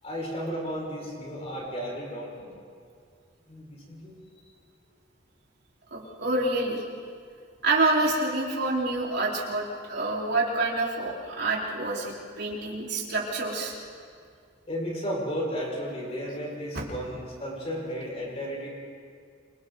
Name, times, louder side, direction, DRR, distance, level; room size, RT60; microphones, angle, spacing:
voice 1, 0.0-2.5 3.5-4.2 14.7-18.7, equal, 35° left, -2 dB, 6.2 m, -34 dB
voice 2, 5.9-6.8 7.6-13.7 16.7-16.8, right 2 dB, 60° right, -5 dB, 4.8 m, -27 dB
28.5 x 26.0 x 4.2 m, 2.3 s
head